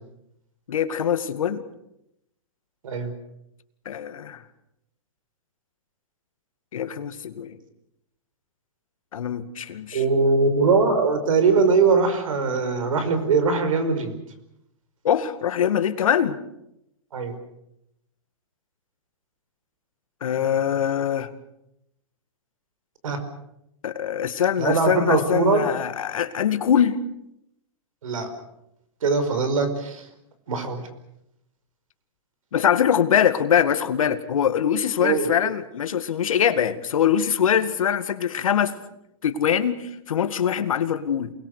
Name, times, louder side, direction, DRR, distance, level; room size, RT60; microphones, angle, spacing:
voice 1, 0.7-1.6 3.9-4.4 6.7-7.6 9.1-10.0 15.0-16.4 20.2-21.3 23.8-27.0 32.5-38.8 39.2-41.3, left 9 dB, 80° left, 10 dB, 2.1 m, -23 dB
voice 2, 9.9-14.1 17.1-17.4 23.0-23.2 24.6-25.6 28.0-28.3 29.0-30.0 30.5-30.8 35.0-35.3, right 4 dB, 80° right, 10 dB, 5.1 m, -21 dB
28.0 x 21.0 x 6.7 m, 0.81 s
hypercardioid pair, 145°, 17 cm